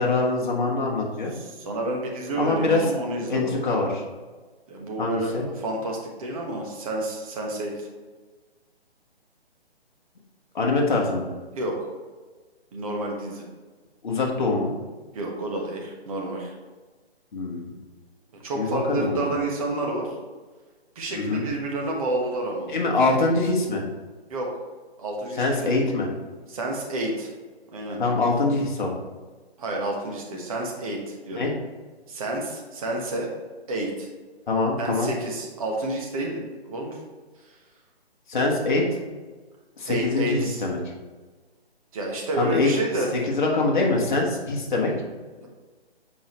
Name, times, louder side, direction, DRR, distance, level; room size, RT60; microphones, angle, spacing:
voice 1, 0.0-1.3 2.3-2.8 3.3-4.0 5.0-5.4 10.5-11.3 14.0-14.7 17.3-17.7 18.5-19.3 21.1-21.4 22.7-23.8 25.4-26.1 28.0-28.9 31.3-31.5 34.5-35.1 38.3-38.8 39.8-40.8 42.4-42.7 43.1-44.9, left 3 dB, 45° left, -1 dB, 1.5 m, -24 dB
voice 2, 1.3-3.5 4.7-7.9 11.5-11.9 12.7-13.4 15.1-16.5 18.4-20.1 20.9-22.7 24.3-24.5 25.0-25.7 26.5-27.3 27.7-28.0 29.6-31.5 32.1-33.3 33.7-34.1 34.8-37.0 37.4-37.5 39.9-40.6 41.9-43.1 45.4-45.5, right 2 dB, 35° right, 0 dB, 1.3 m, -29 dB
7.1 x 5.1 x 3.1 m, 1.3 s
figure-of-eight pair, 145°, 32 cm